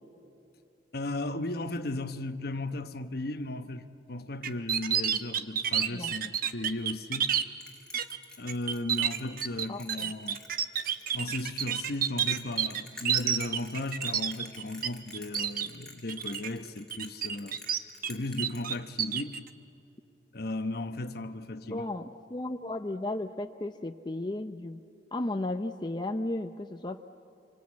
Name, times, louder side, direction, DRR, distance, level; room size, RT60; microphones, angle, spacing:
voice 1, 0.9-7.3 8.4-10.4 11.1-17.6 18.1-19.4 20.3-21.9, left 2 dB, 60° left, 1.0 m, -36 dB
sound 1, 4.4-7.4 7.9-8.2 8.5-14.9 15.1-15.7 16.1-16.5 16.9-18.1 18.4-19.4, right 9 dB, 50° right, 1.0 m, -29 dB
Bell, 7.6-19.3, left 2 dB, 5° left, 2.6 m, -49 dB
voice 2, 9.7-10.1 21.7-22.0 22.3-24.8 25.1-27.0, left 2 dB, 25° left, 0.6 m, -34 dB
27.0 x 24.5 x 8.5 m
head